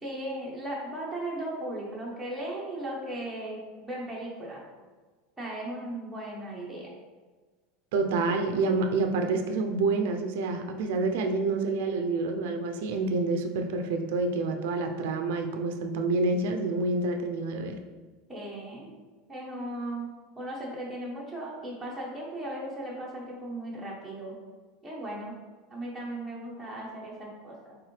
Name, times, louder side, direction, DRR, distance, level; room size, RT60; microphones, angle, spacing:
voice 1, 0.0-4.6 5.4-6.9 18.3-18.9 19.3-20.1 20.4-24.4 24.8-25.4 25.7-27.8, right 1 dB, 5° right, -6 dB, 1.0 m, -37 dB
voice 2, 7.9-17.8, right 3 dB, 75° right, 5 dB, 0.5 m, -28 dB
4.7 x 3.6 x 3.2 m, 1.3 s
supercardioid pair, 145°, 0 cm